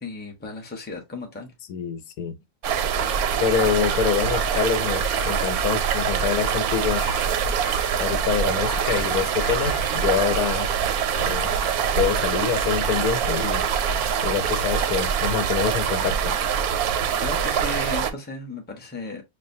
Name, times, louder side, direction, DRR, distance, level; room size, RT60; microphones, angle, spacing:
voice 1, 0.0-1.5 17.2-19.2, left 3 dB, 10° left, 0.6 m, -35 dB
voice 2, 1.7-2.3 3.4-7.0 8.0-10.7 11.2-11.5 11.9-13.6 14.2-16.3, left 8 dB, 85° left, 1.2 m, -26 dB
sound 1, 2.6-18.1, right 7 dB, 85° right, 1.1 m, -24 dB
sound 2, 3.5-8.0 8.5-10.6 10.9-11.9, left 5 dB, 55° left, 0.9 m, -41 dB
6.3 x 2.2 x 2.6 m
omnidirectional pair, 1.5 m